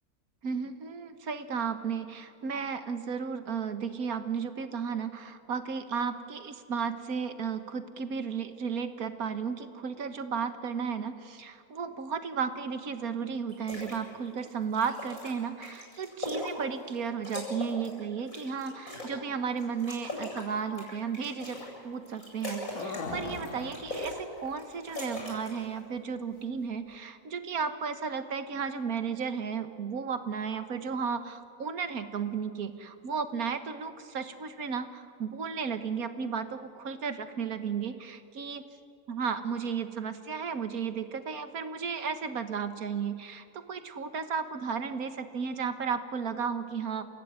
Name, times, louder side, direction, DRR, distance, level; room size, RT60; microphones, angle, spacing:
voice 1, 0.4-21.6 21.8-38.6 39.1-47.0, right 6 dB, 75° right, 9 dB, 1.8 m, -34 dB
sound 1, 13.5-14.0 14.4-17.0 17.2-19.2 19.6-21.7 22.0-23.0 23.3-24.2 24.5-25.6, left 1 dB, 60° left, 8.2 m, -39 dB
sound 2, 22.6-24.6 24.9-25.0 25.4-25.6 26.4-26.5 26.9-27.0, left 3 dB, 90° left, 2.3 m, -39 dB
29.0 x 16.0 x 9.6 m, 2.4 s
omnidirectional pair, 1.6 m